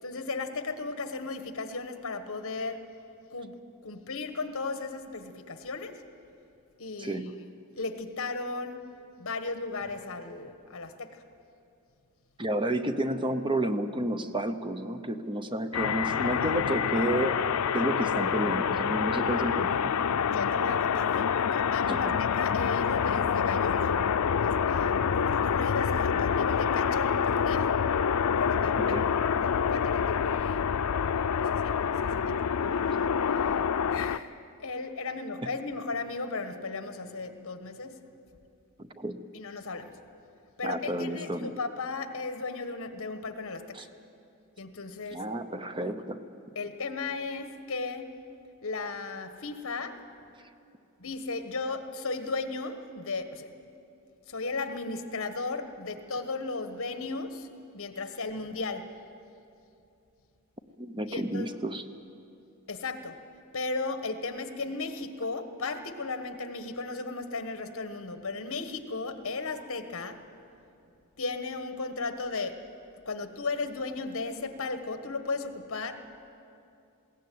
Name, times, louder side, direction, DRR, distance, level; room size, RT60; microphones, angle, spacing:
voice 1, 0.0-2.8 3.3-3.5 3.8-6.0 6.8-7.3 7.7-8.9 9.2-11.2 20.3-24.0 24.4-27.8 28.4-30.7 31.0-32.4 33.9-34.3 34.6-38.0 39.3-40.0 40.6-43.9 44.6-45.2 46.5-48.1 48.6-50.0 51.0-53.5 54.3-57.5 57.7-58.9 61.1-61.5 62.7-63.2 63.5-70.2 71.2-72.6 73.0-76.0, left 3 dB, 65° left, 8 dB, 1.4 m, -35 dB
voice 2, 7.0-7.4 12.4-17.3 17.7-19.9 21.9-22.2 28.8-29.1 38.8-39.3 40.6-41.6 43.7-43.8 45.1-46.2 60.8-61.8, right 1 dB, 20° right, 9 dB, 0.8 m, -31 dB
sound 1, 15.7-34.2, left 7 dB, 90° left, 0.5 m, -27 dB
21.0 x 16.5 x 9.4 m, 2.7 s
head